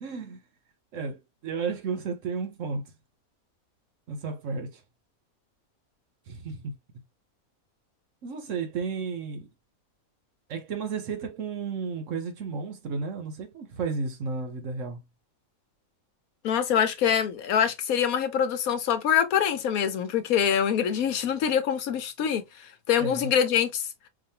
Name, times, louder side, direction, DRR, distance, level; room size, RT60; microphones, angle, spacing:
voice 1, 0.0-0.4 0.9-2.9 4.1-4.8 6.3-6.7 8.2-9.5 10.5-15.0 23.0-23.3, right 5 dB, 65° right, 1.2 m, -33 dB
voice 2, 16.4-22.4 22.9-23.8, left 8 dB, 75° left, 1.2 m, -24 dB
4.9 x 2.6 x 2.7 m
omnidirectional pair, 1.5 m